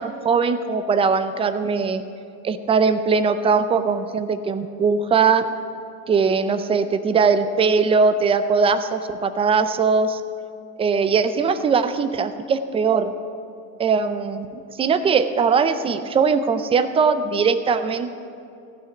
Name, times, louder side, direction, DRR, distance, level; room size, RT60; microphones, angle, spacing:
voice 1, 0.0-2.0 2.4-5.5 6.1-10.2 10.8-13.1 13.8-18.2, right 5 dB, 15° right, 11 dB, 0.4 m, -20 dB
15.5 x 5.9 x 9.5 m, 2.6 s
supercardioid pair, 110°, 49 cm